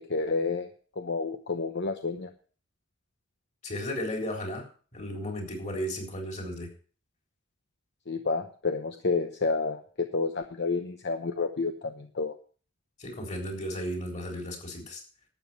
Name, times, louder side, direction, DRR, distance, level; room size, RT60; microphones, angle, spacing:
voice 1, 0.1-0.7 1.0-2.3 8.1-12.3, left 4 dB, 60° left, 6 dB, 0.9 m, -30 dB
voice 2, 3.6-6.7 13.0-15.0, equal, 40° left, 1 dB, 3.9 m, -35 dB
12.5 x 8.3 x 5.7 m, 0.41 s
head